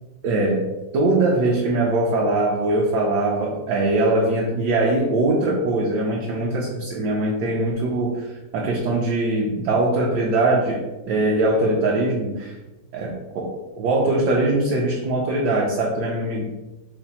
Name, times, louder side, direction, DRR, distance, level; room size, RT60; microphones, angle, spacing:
voice 1, 0.2-0.7 0.9-8.3 8.5-12.6 12.9-16.5, right 2 dB, 70° right, -2 dB, 1.2 m, -21 dB
5.8 x 2.0 x 4.1 m, 1.1 s
omnidirectional pair, 2.0 m